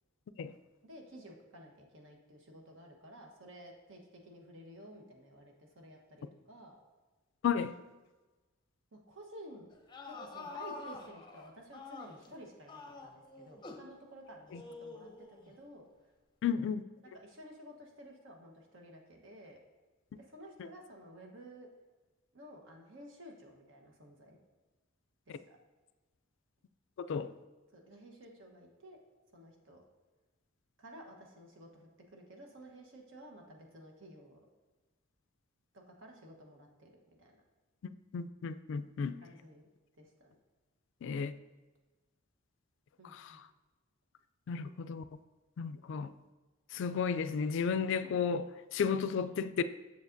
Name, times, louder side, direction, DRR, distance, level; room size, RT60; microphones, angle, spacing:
voice 1, 0.8-6.8 8.9-9.7 10.1-15.9 17.1-19.6 20.3-21.7 22.3-24.4 25.3-25.6 27.7-29.0 29.3-29.8 30.8-34.4 35.7-37.4 39.2-39.7 40.0-40.3 43.0-43.4, equal, 65° right, 1.1 m, -53 dB
voice 2, 7.4-7.7 14.5-14.6 16.4-16.8 20.6-20.7 25.3-25.4 27.1-27.3 38.1-39.2 41.0-41.3 43.0-43.4 44.5-45.0 45.6-46.1 46.7-49.6, left 6 dB, 65° left, 0.3 m, -33 dB
sound 1, 9.7-12.3 12.7-13.9 14.5-15.5, left 3 dB, 20° left, 0.6 m, -47 dB
7.1 x 6.9 x 2.6 m
head